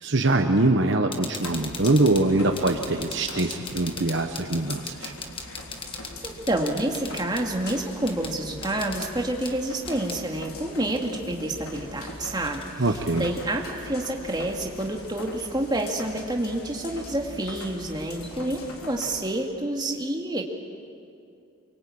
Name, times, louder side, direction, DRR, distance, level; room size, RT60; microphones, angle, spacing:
voice 1, 0.0-5.1 12.8-13.3, right 2 dB, 55° right, 5 dB, 1.1 m, -23 dB
sound 1, 1.1-10.2 10.9-12.7 13.6-13.7 14.1-15.4 15.7-15.9 16.3-19.1, left 4 dB, 25° left, 1.6 m, -42 dB
sound 2, 1.4-19.2, left 2 dB, 80° left, 3.7 m, -42 dB
voice 2, 6.2-20.4, right 1 dB, 20° right, 1 dB, 2.2 m, -28 dB
24.5 x 23.5 x 8.7 m, 2.5 s
head